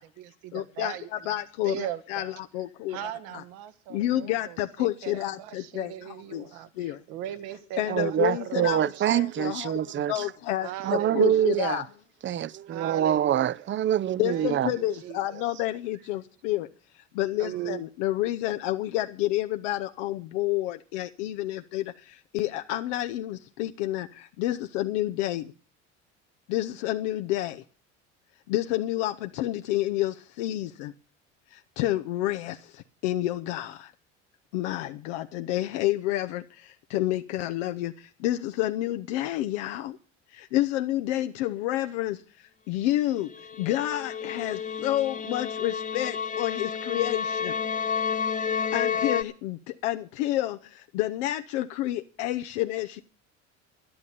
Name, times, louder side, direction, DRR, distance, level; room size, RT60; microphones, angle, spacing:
voice 1, 0.0-2.4 2.9-9.2 10.6-11.6 12.7-13.7 14.2-15.4 17.4-17.8, right 12 dB, 70° right, 1.5 m, -39 dB
voice 2, 0.5-3.4 3.9-5.9 6.3-6.4 6.8-7.0 7.8-8.8 9.1-9.8 10.1-11.9 14.2-16.7 17.2-21.8 22.3-24.1 24.4-25.5 26.5-27.6 28.5-30.9 31.8-32.6 33.0-33.8 34.5-36.4 36.9-37.9 38.2-40.0 40.5-42.2 42.7-43.3 43.6-47.5 48.7-50.6 50.9-53.0, left 15 dB, 75° left, 0.8 m, -29 dB
voice 3, 7.9-10.3 10.8-11.8 12.2-14.7, right 10 dB, 35° right, 0.6 m, -25 dB
sound 1, 43.3-49.2, left 6 dB, 20° left, 1.0 m, -30 dB
12.0 x 11.5 x 6.8 m
hypercardioid pair, 70°, 36 cm